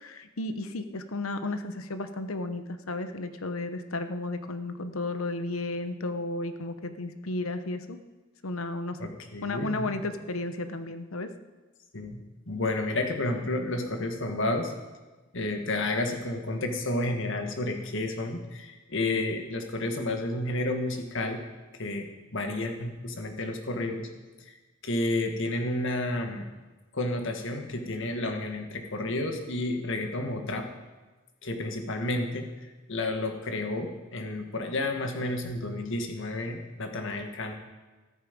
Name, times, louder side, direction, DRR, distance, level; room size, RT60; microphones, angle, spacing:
voice 1, 0.0-8.0 8.4-9.0 9.4-11.3, left 2 dB, 85° left, 9 dB, 1.0 m, -33 dB
voice 2, 9.0-9.9 11.9-14.7 15.3-21.5 21.7-24.1 24.5-24.6 24.8-26.5 26.9-30.7 31.4-32.5 32.9-37.5, left 2 dB, 65° left, 5 dB, 1.7 m, -31 dB
14.0 x 13.5 x 5.2 m, 1.2 s
head